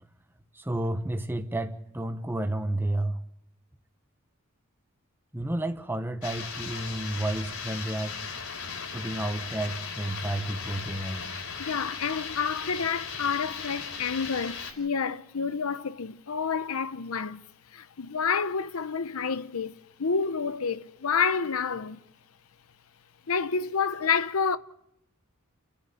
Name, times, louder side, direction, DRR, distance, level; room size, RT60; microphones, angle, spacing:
voice 1, 0.5-3.2 5.3-8.2 8.9-11.3, right 1 dB, 10° right, 1.1 m, -31 dB
sound 1, 6.2-14.7, left 6 dB, 70° left, 5.0 m, -37 dB
voice 2, 11.6-17.4 17.7-22.0 23.3-24.6, left 5 dB, 85° left, 0.8 m, -29 dB
30.0 x 10.5 x 9.3 m
head